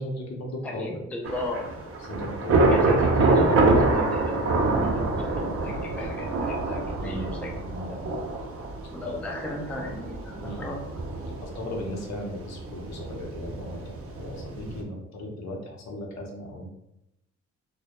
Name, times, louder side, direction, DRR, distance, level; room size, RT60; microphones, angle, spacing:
voice 1, 0.0-1.0 2.1-2.9 3.5-3.6 7.0-8.0 9.0-9.1 10.4-10.8 11.4-16.7, left 1 dB, 60° left, 0 dB, 0.7 m, -36 dB
voice 2, 0.6-1.6 2.7-4.3 4.7-7.5 7.9-8.2 8.9-10.8, left 1 dB, 5° left, -1 dB, 0.4 m, -35 dB
Thunder / Rain, 1.2-14.8, right 3 dB, 50° right, 0.5 m, -26 dB
2.1 x 2.1 x 2.8 m, 0.85 s
cardioid pair, 90°, 30 cm